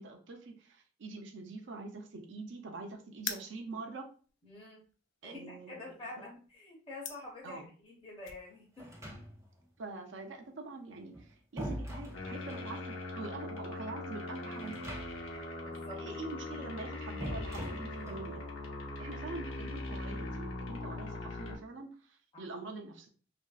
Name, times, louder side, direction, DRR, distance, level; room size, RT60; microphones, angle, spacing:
voice 1, 0.0-4.1 5.2-6.2 7.4-7.7 9.8-14.8 16.0-18.5 19.0-23.1, right 3 dB, 65° right, 3 dB, 0.5 m, -44 dB
sound 1, 3.1-8.4, left 8 dB, 70° left, 0.4 m, -45 dB
voice 2, 4.4-4.8 5.2-8.9 15.6-16.0 22.3-22.5, left 2 dB, 25° left, -4 dB, 0.7 m, -47 dB
sound 2, 8.8-9.6 10.9-12.7 14.6-15.4 15.7-15.8 17.2-18.3, equal, 15° right, 0.6 m, -42 dB
sound 3, 12.1-21.6, left 2 dB, 90° left, 0.8 m, -41 dB
2.9 x 2.5 x 2.3 m, 0.39 s
head